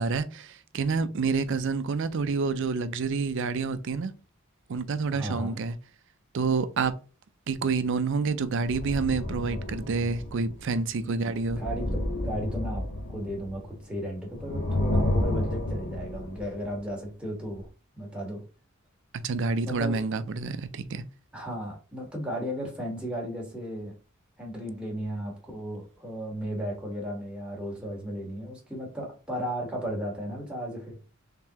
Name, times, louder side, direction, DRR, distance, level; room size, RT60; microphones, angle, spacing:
voice 1, 0.0-4.1 4.7-5.8 6.3-6.9 7.5-11.6 19.2-21.0, right 4 dB, 60° right, 0.4 m, -28 dB
voice 2, 5.1-5.6 11.6-17.7 18.0-18.4 19.6-20.0 21.3-23.9 24.4-31.0, equal, 5° right, 1.5 m, -35 dB
sound 1, 8.6-10.8 11.3-14.0 14.3-16.8 17.6-17.7, left 1 dB, 50° left, 1.1 m, -31 dB
3.7 x 3.6 x 2.9 m
head